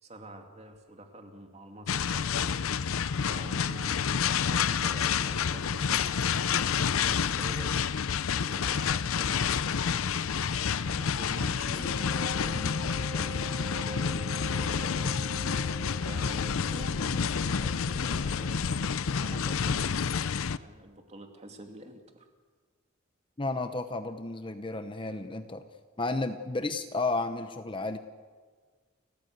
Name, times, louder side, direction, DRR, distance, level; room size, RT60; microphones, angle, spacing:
voice 1, 0.0-2.5 3.3-7.7 8.3-10.1 10.8-15.2 16.0-22.3, right 1 dB, 30° right, 4 dB, 2.5 m, -47 dB
sound 1, 1.9-20.6, left 6 dB, 80° left, 0.6 m, -29 dB
Wind instrument woodwind instrument, 11.8-18.4, equal, 5° right, 3.6 m, -45 dB
voice 2, 23.4-25.6 26.0-28.0, left 3 dB, 25° left, 9 dB, 0.8 m, -32 dB
30.0 x 14.5 x 8.0 m, 1.5 s
head